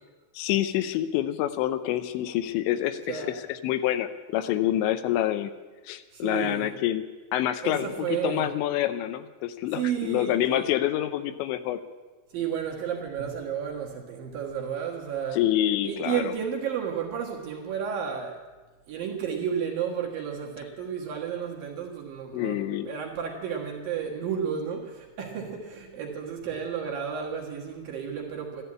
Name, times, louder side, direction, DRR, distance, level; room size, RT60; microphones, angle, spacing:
voice 1, 0.4-5.5 5.9-7.0 7.3-11.8 15.3-16.3 22.3-22.9, left 12 dB, 80° left, 11 dB, 2.9 m, -27 dB
voice 2, 3.1-3.4 6.1-6.7 7.6-8.5 9.7-10.7 12.3-15.4 15.8-18.4 18.9-28.6, right 8 dB, 60° right, -1 dB, 2.8 m, -32 dB
13.0 x 12.5 x 8.7 m, 1.3 s
omnidirectional pair, 5.4 m